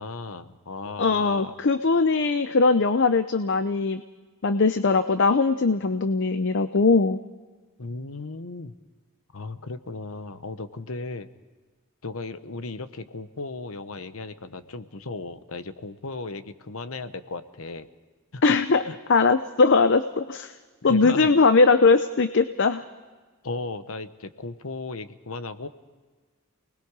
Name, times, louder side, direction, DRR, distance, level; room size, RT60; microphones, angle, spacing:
voice 1, 0.0-1.5 7.8-8.8 9.3-11.3 12.0-17.9 18.3-18.4 18.9-19.0 20.9-21.3 23.4-25.7, left 3 dB, 70° left, 11 dB, 1.0 m, -36 dB
voice 2, 1.0-4.0 4.4-7.2 18.4-18.8 19.1-20.5 20.8-22.8, left 4 dB, 55° left, 10 dB, 0.6 m, -20 dB
28.5 x 20.0 x 4.8 m, 1.4 s
head